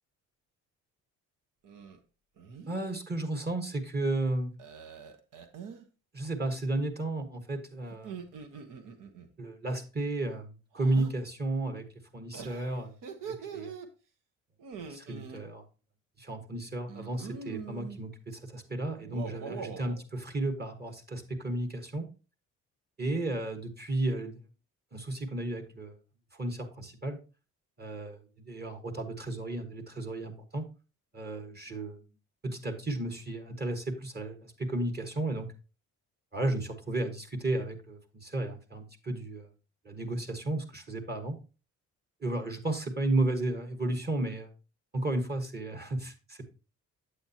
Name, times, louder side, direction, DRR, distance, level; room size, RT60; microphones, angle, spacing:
sound 1, 1.6-2.0 2.4-2.9 4.6-5.8 7.9-9.3 10.7-11.1 12.3-13.9 14.6-15.4 16.9-18.0 19.0-20.0, right 6 dB, 70° right, 1.2 m, -43 dB
voice 1, 2.7-4.5 6.1-8.1 9.4-11.9 12.1-12.9 13.2-13.7 14.9-15.6 16.2-22.1 23.0-24.4 24.9-26.0 26.3-27.2 27.8-30.6 31.1-32.0 32.4-35.5 36.3-39.5 39.8-41.4 42.2-44.5 44.9-46.5, right 2 dB, 30° right, 6 dB, 1.4 m, -33 dB
8.6 x 7.8 x 2.8 m, 0.33 s
supercardioid pair, 70°, 33 cm